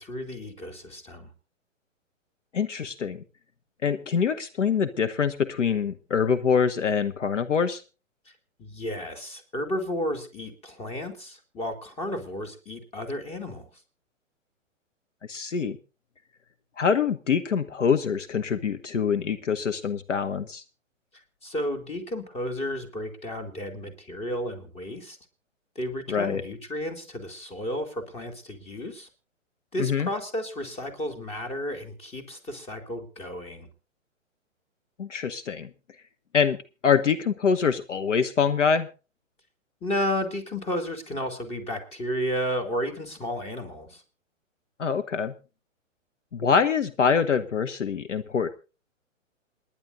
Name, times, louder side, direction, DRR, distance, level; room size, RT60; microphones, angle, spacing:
voice 1, 0.0-1.3 8.3-8.4 8.6-13.7 21.4-25.2 25.7-29.1 29.7-33.7 39.8-44.0, equal, 15° left, 7 dB, 2.7 m, -32 dB
voice 2, 2.5-3.2 3.8-7.8 15.3-15.8 16.8-20.6 26.1-26.4 29.8-30.1 35.0-35.7 36.3-36.6 36.8-38.9 44.8-45.3 46.3-48.5, left 6 dB, 65° left, 10 dB, 1.2 m, -25 dB
28.0 x 10.5 x 2.6 m, 0.33 s
figure-of-eight pair, 120°, 39 cm